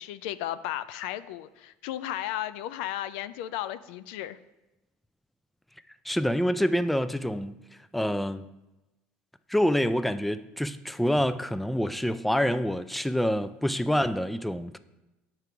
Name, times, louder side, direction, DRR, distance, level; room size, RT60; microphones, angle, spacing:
voice 1, 0.0-4.4, left 12 dB, 80° left, 0.4 m, -34 dB
voice 2, 6.1-7.5 7.9-8.4 9.5-14.8, equal, ahead, 0.3 m, -26 dB
7.7 x 4.7 x 5.9 m
supercardioid pair, 85°, 5 cm